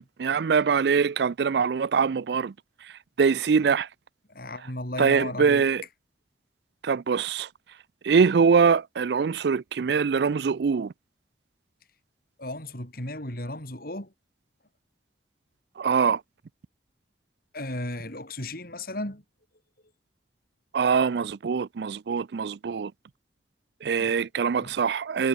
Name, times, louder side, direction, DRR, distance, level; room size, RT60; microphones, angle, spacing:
voice 1, 0.0-2.5 2.8-2.9 3.2-3.9 5.0-5.8 6.8-7.5 8.0-10.9 15.8-16.2 20.7-22.9 23.8-25.3, right 6 dB, 65° right, 0.4 m, -23 dB
voice 2, 4.3-5.7 12.4-14.1 17.5-19.2 24.0-24.2 24.6-24.8, left 1 dB, 55° left, 7.2 m, -35 dB
head